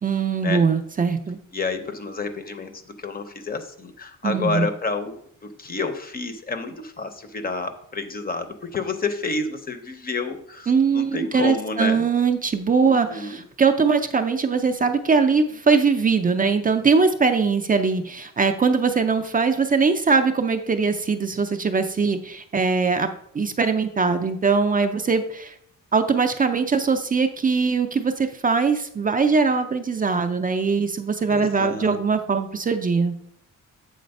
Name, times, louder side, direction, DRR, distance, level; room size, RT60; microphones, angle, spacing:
voice 1, 0.0-1.4 4.2-4.7 10.7-23.1 23.3-25.5 25.9-33.1, right 5 dB, 25° right, 7 dB, 0.4 m, -21 dB
voice 2, 1.5-5.2 5.4-12.0 12.8-13.4 31.3-32.0, left 4 dB, 25° left, 8 dB, 0.5 m, -29 dB
7.7 x 4.0 x 5.2 m, 0.68 s
wide cardioid pair, 175°, 34 cm